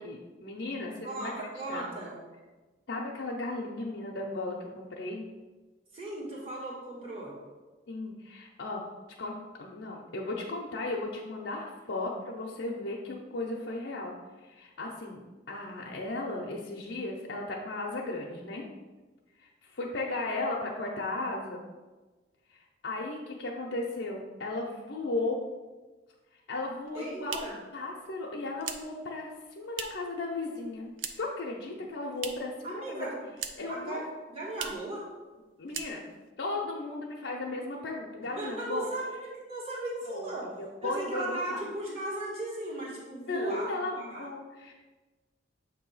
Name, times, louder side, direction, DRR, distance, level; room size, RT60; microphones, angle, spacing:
voice 1, 0.0-1.3 1.7-1.9 2.9-5.3 7.9-8.9 9.2-14.1 14.4-18.7 19.4-21.7 22.5-25.4 26.5-27.5 27.7-30.9 31.2-33.1 33.6-34.0 35.6-36.1 36.4-38.9 40.0-41.6 43.3-44.7, left 2 dB, 70° left, -2 dB, 0.7 m, -35 dB
voice 2, 1.0-2.1 5.9-7.3 26.9-27.6 32.6-33.2 33.7-35.0 38.4-40.4 40.8-44.2, right 2 dB, 30° right, -6 dB, 1.5 m, -37 dB
sound 1, 26.7-30.2 30.5-31.4 31.7-32.6 32.9-33.8 34.1-34.2 34.5-34.9 35.3-35.4 35.7-36.3, right 7 dB, 80° right, 0.5 m, -41 dB
7.2 x 2.7 x 5.5 m, 1.2 s
head